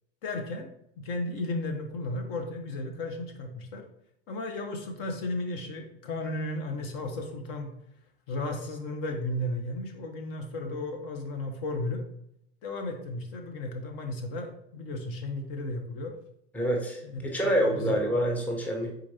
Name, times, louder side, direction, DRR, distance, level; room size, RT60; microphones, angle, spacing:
voice 1, 0.2-0.7 1.0-3.8 4.3-7.7 8.3-12.0 12.6-16.2 17.1-18.0, left 2 dB, 45° left, 4 dB, 0.9 m, -34 dB
voice 2, 16.5-18.9, equal, 5° left, 0 dB, 0.7 m, -27 dB
4.4 x 3.9 x 2.8 m, 0.74 s
hypercardioid pair, 100°, 33 cm